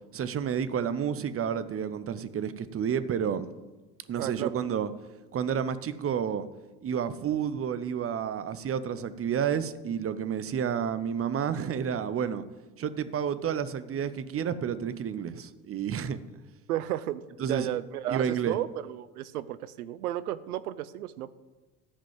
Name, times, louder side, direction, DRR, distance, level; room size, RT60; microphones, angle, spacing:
voice 1, 0.1-3.5 4.1-4.9 5.3-6.5 6.8-12.4 12.8-16.2 17.4-17.7 18.1-18.6, right 8 dB, 30° right, 13 dB, 0.8 m, -30 dB
voice 2, 4.2-4.6 16.7-17.2 17.5-21.3, right 13 dB, 75° right, 15 dB, 0.6 m, -33 dB
13.5 x 5.1 x 7.5 m, 1.2 s
figure-of-eight pair, 65°, 45 cm